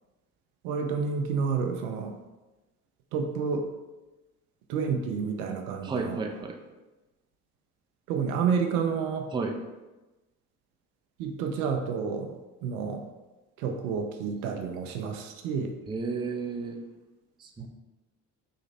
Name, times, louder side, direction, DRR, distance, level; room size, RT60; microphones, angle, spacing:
voice 1, 0.6-2.2 3.1-3.6 4.7-6.2 8.1-9.3 11.2-12.3 12.6-13.0 13.6-15.7 17.6-17.7, right 6 dB, 70° right, 4 dB, 0.6 m, -29 dB
voice 2, 5.8-6.6 9.3-9.6 15.9-16.8 17.4-17.7, right 4 dB, 10° right, 2 dB, 0.4 m, -32 dB
3.3 x 2.9 x 4.2 m, 1.1 s
figure-of-eight pair, 45°, 45 cm